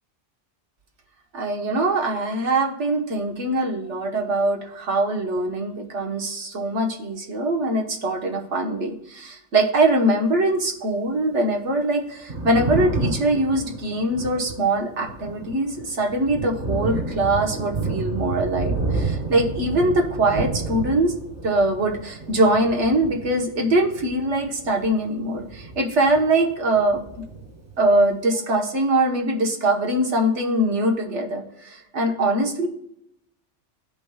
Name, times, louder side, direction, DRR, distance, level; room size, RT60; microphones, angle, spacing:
voice 1, 1.3-21.2 21.4-27.0 27.8-32.7, right 1 dB, 70° right, 1 dB, 1.5 m, -22 dB
Thunder, 12.1-26.5 26.8-28.0, right 3 dB, 45° right, 2.3 m, -31 dB
15.0 x 5.2 x 2.3 m, 0.77 s
omnidirectional pair, 1.2 m